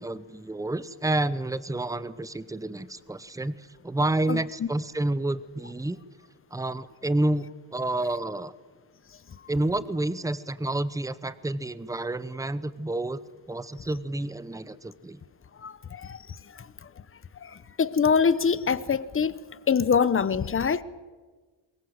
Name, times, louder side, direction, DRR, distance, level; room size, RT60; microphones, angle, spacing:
voice 1, 0.0-6.0 6.5-7.5 7.7-8.5 9.5-13.2 13.5-15.2, right 2 dB, 5° right, 16 dB, 0.9 m, -29 dB
voice 2, 15.6-16.2 16.5-16.7 17.4-19.3 19.7-20.8, left 6 dB, 30° left, 15 dB, 1.0 m, -24 dB
23.5 x 21.5 x 8.1 m, 1.4 s
cardioid pair, 130°, 46 cm